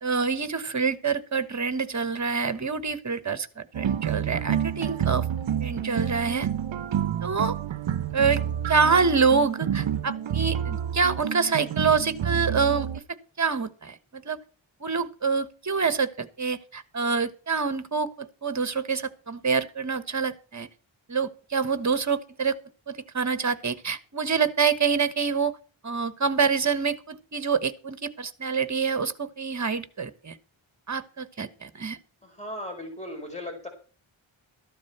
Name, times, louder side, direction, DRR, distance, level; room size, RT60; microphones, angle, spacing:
voice 1, 0.0-5.3 5.6-6.5 7.2-7.5 8.1-8.4 8.7-12.9 13.4-14.4 14.8-20.7 21.1-22.6 22.9-25.5 25.8-30.4 30.9-32.0, right 5 dB, 35° right, 13 dB, 1.2 m, -26 dB
sound 1, 3.7-13.0, right 9 dB, 65° right, 0.7 m, -29 dB
voice 2, 32.2-33.7, left 1 dB, 15° left, 3 dB, 4.8 m, -37 dB
14.0 x 11.5 x 4.4 m, 0.37 s
wide cardioid pair, 105°, 49 cm